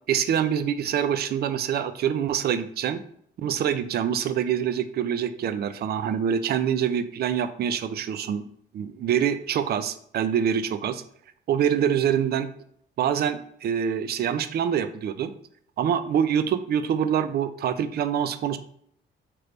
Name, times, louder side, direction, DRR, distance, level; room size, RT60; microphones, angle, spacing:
voice 1, 0.1-3.0 3.4-8.4 8.7-11.0 11.5-12.5 13.0-15.3 15.8-18.6, right 8 dB, 55° right, 12 dB, 0.4 m, -25 dB
4.5 x 3.2 x 2.6 m, 0.65 s
cardioid pair, 90°, 20 cm